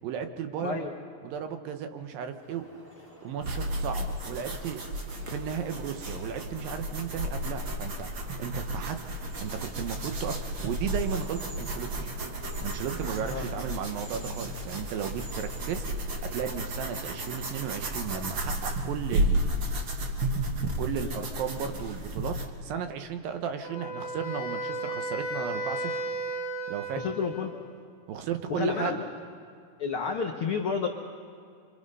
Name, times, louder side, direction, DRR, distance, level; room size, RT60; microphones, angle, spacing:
voice 1, 0.0-0.8 1.2-2.7 3.2-4.8 5.3-8.1 8.4-9.0 9.4-12.1 12.6-15.8 16.2-19.5 20.8-22.4 22.6-26.0 26.7-27.0 28.1-29.0, right 8 dB, 80° right, 7 dB, 2.9 m, -34 dB
voice 2, 0.6-0.9 13.3-13.4 21.0-21.1 27.0-27.5 28.5-29.1 29.8-30.9, left 5 dB, 80° left, 2 dB, 1.2 m, -30 dB
sound 1, 2.4-18.1, equal, 15° right, 5.9 m, -51 dB
sound 2, 3.4-22.5, right 1 dB, 50° right, 1.6 m, -33 dB
Wind instrument woodwind instrument, 23.6-27.7, right 2 dB, 35° left, 2.9 m, -34 dB
25.5 x 25.5 x 5.5 m, 2.3 s
omnidirectional pair, 4.1 m